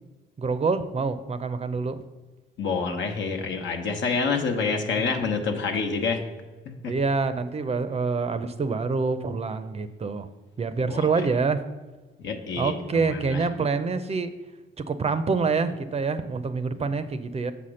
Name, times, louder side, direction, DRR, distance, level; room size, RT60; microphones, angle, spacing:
voice 1, 0.4-2.0 4.9-5.0 6.9-10.3 10.6-11.6 12.6-14.3 14.8-17.5, right 4 dB, 30° right, 11 dB, 0.5 m, -26 dB
voice 2, 2.6-6.2 6.6-6.9 10.8-11.2 12.2-13.5 16.8-16.9, left 4 dB, 70° left, 4 dB, 1.1 m, -28 dB
7.1 x 4.2 x 6.3 m, 1.2 s
cardioid pair, 90°, 20 cm